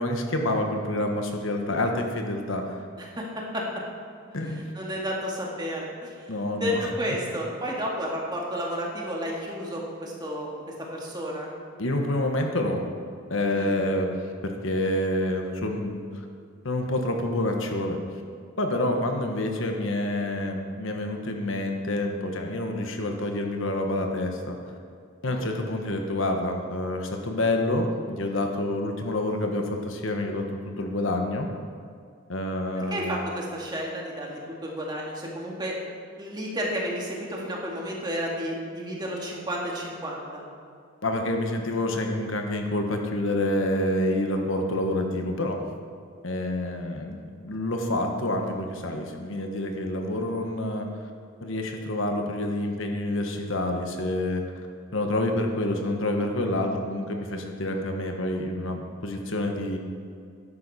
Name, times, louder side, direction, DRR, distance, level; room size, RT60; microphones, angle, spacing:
voice 1, 0.0-2.9 4.3-4.7 6.3-6.8 11.8-12.8 13.3-14.1 14.4-16.3 16.6-18.0 18.6-24.6 25.2-31.5 32.3-33.1 41.0-45.6 46.2-50.9 51.4-54.7 54.9-59.8, left 1 dB, 65° left, 3 dB, 1.3 m, -28 dB
voice 2, 3.0-3.6 4.4-6.3 6.6-10.6 10.9-11.5 13.5-13.7 25.3-25.5 32.9-35.7 36.2-40.4, equal, 20° right, -2 dB, 2.0 m, -32 dB
13.0 x 11.0 x 4.2 m, 2.2 s
head